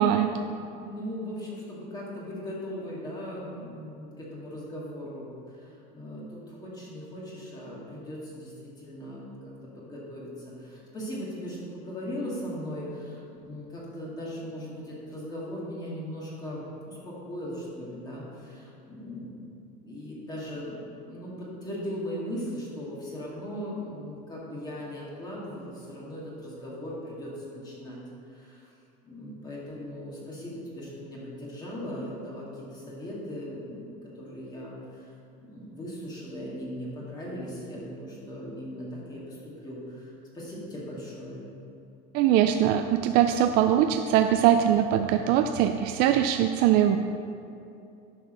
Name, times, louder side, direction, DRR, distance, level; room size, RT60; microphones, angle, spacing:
voice 1, 0.3-9.3 9.8-28.0 28.3-28.7 29.0-41.4, equal, 20° left, -6 dB, 1.9 m, -38 dB
voice 2, 42.1-47.0, right 10 dB, 55° right, 7 dB, 0.4 m, -22 dB
10.5 x 4.9 x 6.1 m, 2.6 s
cardioid pair, 155°, 20 cm